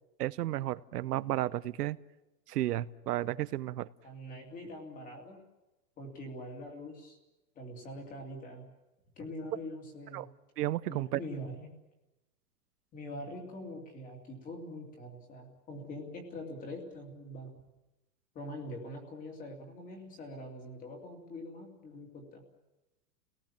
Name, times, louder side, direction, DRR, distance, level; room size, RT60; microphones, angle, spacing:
voice 1, 0.2-2.0 2.5-3.9 10.1-10.3 10.6-11.2, right 14 dB, 70° right, 18 dB, 0.9 m, -33 dB
voice 2, 4.0-5.4 6.0-7.2 7.6-8.7 9.2-10.3 10.9-11.7 12.9-17.6 18.3-22.4, left 1 dB, 15° left, 3 dB, 2.8 m, -44 dB
30.0 x 18.5 x 7.4 m, 1.0 s
supercardioid pair, 175°, 49 cm